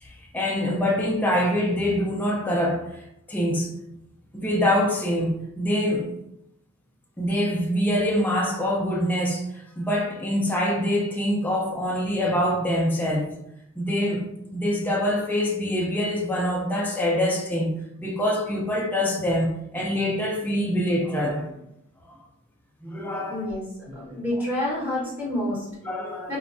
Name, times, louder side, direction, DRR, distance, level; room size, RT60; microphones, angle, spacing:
voice 1, 0.0-3.7 4.3-6.1 7.2-13.3 13.8-17.7 18.0-21.5 22.1-22.2 22.8-23.6 23.9-24.1 25.8-26.3, left 1 dB, 10° left, 0.3 m, -25 dB
voice 2, 23.3-23.6 23.9-25.7 26.3-26.4, left 1 dB, 10° right, 1.1 m, -28 dB
3.1 x 2.1 x 2.5 m
head